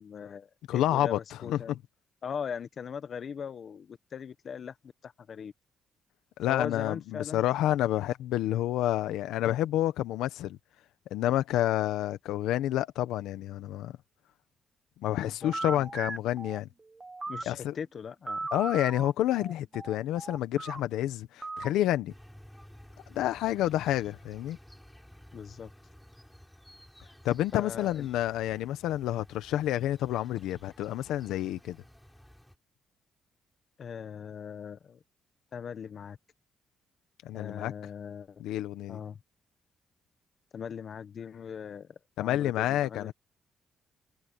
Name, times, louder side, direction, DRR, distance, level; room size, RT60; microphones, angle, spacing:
voice 1, 0.0-1.7 2.2-4.8 5.0-5.5 6.5-7.4 15.1-15.8 17.3-18.5 25.3-25.7 27.5-28.1 33.8-35.0 35.5-36.2 37.3-38.4 38.9-39.2 40.5-43.1, left 7 dB, 55° left, 1.3 m, -40 dB
voice 2, 0.7-1.8 6.4-10.6 11.1-14.0 15.0-16.7 17.5-17.8 18.5-22.1 23.1-24.6 27.2-31.8 37.2-37.7 38.4-39.0 42.2-43.1, left 13 dB, 90° left, 1.2 m, -29 dB
sound 1, 15.4-17.6 18.3-20.8 21.4-21.7, right 3 dB, 20° right, 1.5 m, -38 dB
sound 2, 22.1-32.6, equal, 5° left, 7.2 m, -54 dB
cardioid pair, 90°, 0 cm